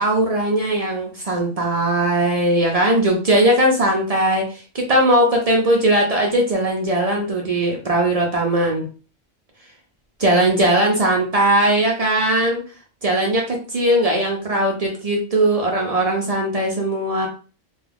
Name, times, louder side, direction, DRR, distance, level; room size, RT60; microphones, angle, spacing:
voice 1, 0.0-8.9 10.2-12.6 13.0-17.3, right 1 dB, 60° right, 0 dB, 0.4 m, -19 dB
2.3 x 2.3 x 3.3 m, 0.37 s
omnidirectional pair, 1.4 m